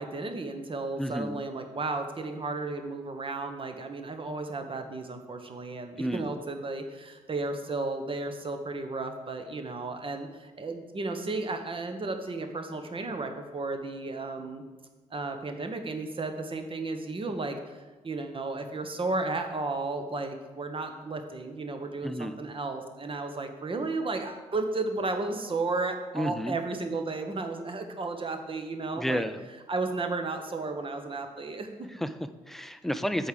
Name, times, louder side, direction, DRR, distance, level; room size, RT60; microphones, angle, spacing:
voice 1, 0.0-14.6 15.1-17.6 18.0-29.2 29.7-31.9, right 3 dB, 30° right, 6 dB, 1.2 m, -33 dB
voice 2, 1.0-1.4 6.0-6.3 22.0-22.4 26.1-26.6 28.9-29.4 31.9-33.3, equal, ahead, 11 dB, 0.6 m, -31 dB
7.9 x 4.7 x 6.7 m, 1.3 s
figure-of-eight pair, 45°, 18 cm